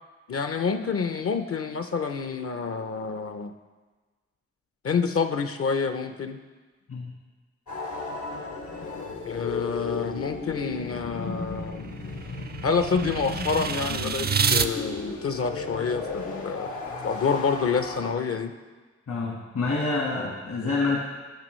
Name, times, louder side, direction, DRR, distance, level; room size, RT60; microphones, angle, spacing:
voice 1, 0.3-3.5 4.8-6.4 9.2-11.9 12.6-16.7 17.0-18.5, left 5 dB, 50° left, 8 dB, 0.5 m, -28 dB
sound 1, 7.7-18.1, left 4 dB, 85° left, 1.1 m, -35 dB
sound 2, 11.1-14.7, right 6 dB, 35° right, 0.4 m, -29 dB
voice 2, 19.1-21.0, left 3 dB, 65° left, -3 dB, 1.5 m, -27 dB
10.5 x 6.1 x 3.1 m, 1.3 s
cardioid pair, 50°, 29 cm